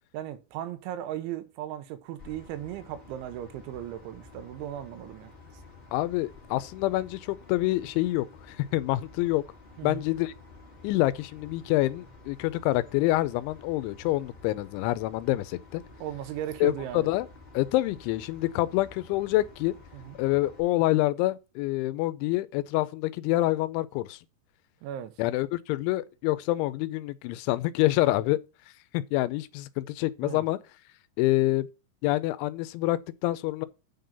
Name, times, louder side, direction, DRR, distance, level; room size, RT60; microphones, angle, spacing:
voice 1, 0.1-5.3 9.8-10.0 16.0-17.1 19.9-20.2 24.8-25.2 30.2-30.5, right 11 dB, 90° right, 3.2 m, -37 dB
sound 1, 2.2-20.6, left 3 dB, 55° left, 0.6 m, -51 dB
voice 2, 5.9-9.4 9.8-10.3 10.8-15.8 16.6-17.3 17.5-19.7 20.2-24.2 25.2-28.4 28.9-30.6 31.2-31.7 32.0-33.7, left 17 dB, 85° left, 2.9 m, -27 dB
9.0 x 3.9 x 6.7 m
omnidirectional pair, 5.4 m